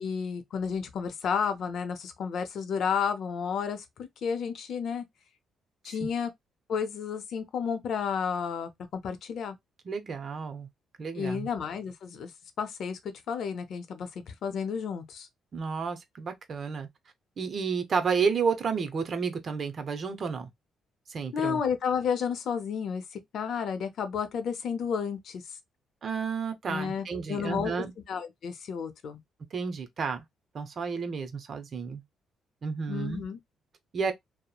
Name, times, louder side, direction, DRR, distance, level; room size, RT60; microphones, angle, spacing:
voice 1, 0.0-3.8 4.2-5.0 5.8-6.3 6.7-9.6 11.2-12.3 12.6-15.3 21.3-23.0 23.3-25.4 26.7-29.2 32.9-33.4, left 6 dB, 65° left, 0.6 m, -31 dB
voice 2, 9.9-10.7 11.0-11.5 15.5-16.9 17.4-20.5 21.1-21.6 26.0-27.9 29.5-30.2 30.5-32.0 32.6-33.3 33.9-34.1, right 5 dB, 50° right, 0.7 m, -31 dB
2.9 x 2.0 x 2.3 m
cardioid pair, 90°, 0 cm